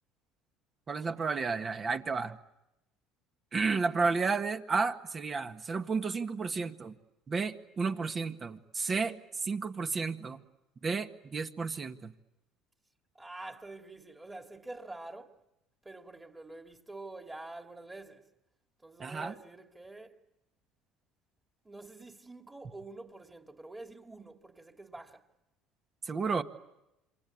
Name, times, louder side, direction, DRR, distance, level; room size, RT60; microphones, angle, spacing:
voice 1, 0.9-2.4 3.5-7.0 7.3-10.4 10.8-12.1 19.0-19.3 26.0-26.4, right 4 dB, 35° right, 1.7 m, -32 dB
voice 2, 13.1-15.3 15.8-18.3 18.8-20.1 21.6-25.2, right 2 dB, 15° right, 2.6 m, -47 dB
27.5 x 24.5 x 8.5 m
supercardioid pair, 95°, 0 cm